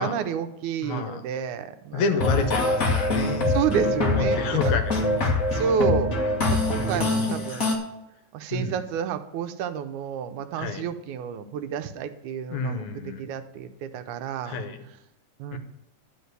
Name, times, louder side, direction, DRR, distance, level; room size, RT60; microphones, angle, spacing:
voice 1, 0.0-2.0 3.5-4.8 5.5-6.1 6.5-7.8 8.3-14.6 15.4-15.6, right 7 dB, 85° right, 9 dB, 2.1 m, -30 dB
voice 2, 0.8-1.2 1.9-3.6 4.1-5.1 6.3-6.4 6.9-7.3 8.5-8.8 10.5-10.8 12.5-13.3 14.5-14.8 15.5-15.6, left 4 dB, 75° left, 7 dB, 2.2 m, -29 dB
sound 1, 2.2-7.7, left 2 dB, 35° left, 1.5 m, -24 dB
11.5 x 5.0 x 8.0 m, 0.85 s
omnidirectional pair, 3.4 m